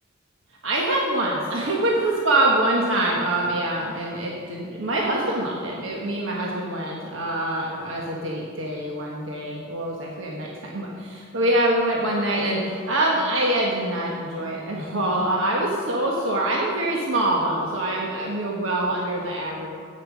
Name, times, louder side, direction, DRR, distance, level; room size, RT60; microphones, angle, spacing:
voice 1, 0.6-19.7, right 1 dB, 80° right, -2 dB, 1.3 m, -25 dB
10.5 x 8.9 x 6.1 m, 2.3 s
head